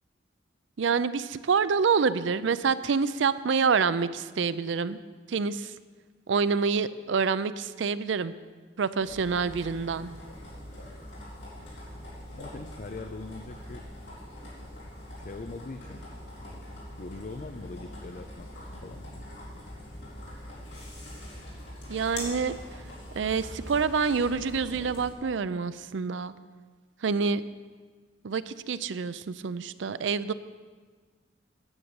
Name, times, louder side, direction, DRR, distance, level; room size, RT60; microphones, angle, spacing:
voice 1, 0.8-5.0 5.3-5.7 6.3-8.3 8.8-10.1 21.9-22.5 23.2-26.3 27.0-27.4 28.2-30.3, right 5 dB, 75° right, 15 dB, 0.5 m, -27 dB
sound 1, 9.0-25.1, left 1 dB, 65° left, 3.8 m, -43 dB
voice 2, 12.4-13.9 15.2-16.1 17.0-19.2, left 3 dB, 45° left, 7 dB, 0.5 m, -42 dB
9.7 x 6.6 x 8.8 m, 1.5 s
head